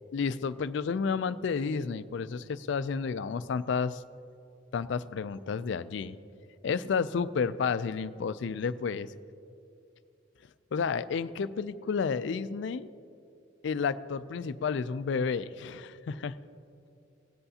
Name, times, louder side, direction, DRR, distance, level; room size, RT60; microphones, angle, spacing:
voice 1, 0.1-4.0 4.7-6.2 6.6-9.1 10.7-12.9 13.6-16.4, left 5 dB, 65° left, 15 dB, 0.3 m, -31 dB
18.0 x 7.9 x 2.8 m, 2.6 s
head